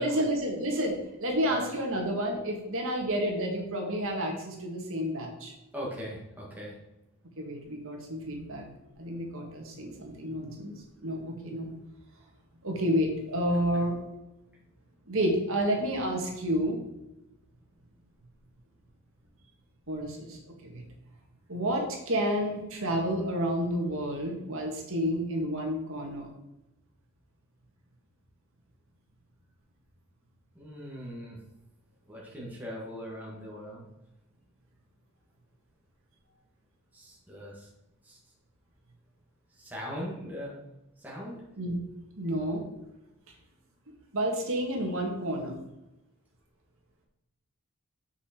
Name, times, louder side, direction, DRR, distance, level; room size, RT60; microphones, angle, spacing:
voice 1, 0.0-5.5 7.4-8.7 9.0-10.7 11.0-11.7 12.6-14.0 15.1-16.8 19.9-20.8 21.5-26.3 41.6-41.8 42.2-42.7 44.1-45.6, equal, 65° right, 1 dB, 1.9 m, -30 dB
voice 2, 5.7-6.7 13.5-13.6 30.6-31.4 32.1-33.8 36.9-37.7 38.1-38.2 39.6-40.7 41.0-41.4, equal, 10° right, -5 dB, 1.9 m, -40 dB
7.6 x 6.0 x 4.5 m, 0.93 s
head